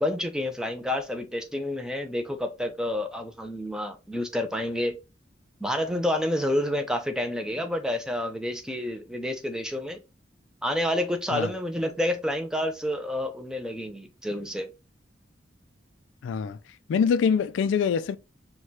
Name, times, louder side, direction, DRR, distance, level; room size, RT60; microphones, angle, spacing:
voice 1, 0.0-5.0 5.6-10.0 10.6-14.7, left 1 dB, 5° right, 0.4 m, -29 dB
voice 2, 16.2-16.6 16.9-18.2, left 6 dB, 85° left, 0.3 m, -24 dB
4.7 x 2.2 x 2.7 m
head